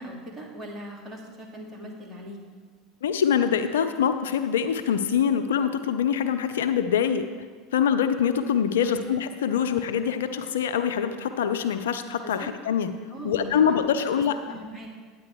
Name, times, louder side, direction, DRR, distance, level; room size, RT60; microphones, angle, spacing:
voice 1, 0.0-2.4 8.8-9.0 12.2-12.5 13.1-14.9, right 1 dB, 25° right, -1 dB, 1.9 m, -40 dB
voice 2, 3.0-7.3 7.7-12.9 13.2-14.6, left 8 dB, 75° left, 9 dB, 0.4 m, -24 dB
9.5 x 9.0 x 3.1 m, 1.5 s
figure-of-eight pair, 75°, 0 cm